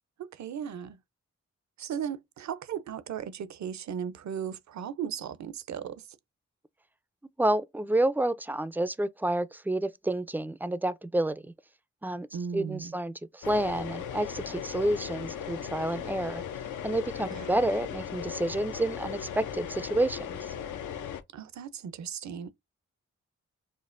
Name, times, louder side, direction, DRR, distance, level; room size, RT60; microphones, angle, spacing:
voice 1, 0.2-1.0 1.8-6.1 12.3-12.9 17.3-17.6 21.3-22.5, right 8 dB, 65° right, 0.6 m, -36 dB
voice 2, 7.4-11.4 12.0-12.3 12.5-16.4 16.8-20.5, right 1 dB, 5° right, 0.4 m, -29 dB
sound 1, 13.4-21.2, left 8 dB, 75° left, 0.5 m, -37 dB
5.2 x 2.1 x 2.5 m
supercardioid pair, 45°, 31 cm